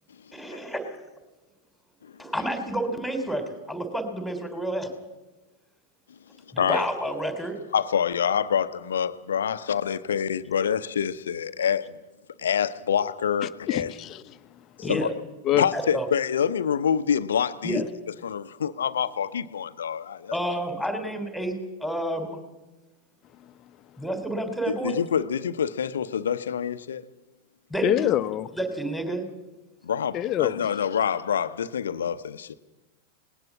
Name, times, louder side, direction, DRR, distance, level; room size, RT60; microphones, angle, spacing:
voice 1, 0.3-0.8 2.2-4.9 6.5-7.6 14.8-15.1 15.7-16.1 17.6-17.8 20.3-21.5 21.8-22.4 24.0-25.0 27.7-28.1 28.6-29.2, right 1 dB, ahead, 3.5 m, -29 dB
voice 2, 7.7-12.0 12.4-13.9 14.8-15.1 15.5-17.8 18.2-20.6 24.7-27.0 29.8-32.5, left 8 dB, 70° left, 0.8 m, -26 dB
voice 3, 13.4-14.2 14.8-15.0 15.4-15.7 17.8-17.9 27.8-28.5 30.1-30.7, left 12 dB, 35° left, 0.9 m, -25 dB
19.5 x 18.5 x 7.3 m
figure-of-eight pair, 90°, 0 cm